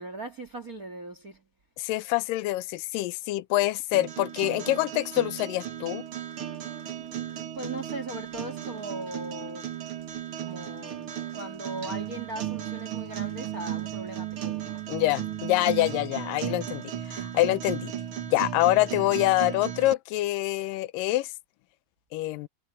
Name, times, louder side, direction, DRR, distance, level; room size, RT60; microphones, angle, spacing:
voice 1, 0.0-1.4 7.0-9.7 10.4-15.1, right 2 dB, 40° right, 1.3 m, -39 dB
voice 2, 1.8-6.0 14.9-17.9 18.3-21.3 22.1-22.5, left 17 dB, 85° left, 1.9 m, -26 dB
sound 1, 3.9-19.9, right 10 dB, 65° right, 1.3 m, -35 dB
omnidirectional pair, 4.8 m